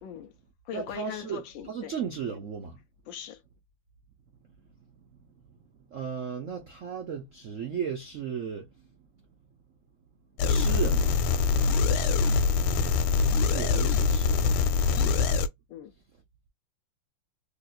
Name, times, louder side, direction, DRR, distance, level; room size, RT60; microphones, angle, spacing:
voice 1, 0.0-0.3 0.6-2.0 3.1-3.4 11.9-12.2 14.9-15.2 15.7-15.9, left 10 dB, 75° left, 1.2 m, -40 dB
voice 2, 0.7-1.4 1.7-2.8 5.9-8.7 10.4-11.2 13.5-14.5 14.9-15.2, right 7 dB, 70° right, 0.7 m, -35 dB
sound 1, 10.4-15.5, left 5 dB, 90° left, 1.5 m, -24 dB
3.4 x 2.9 x 2.4 m
omnidirectional pair, 2.3 m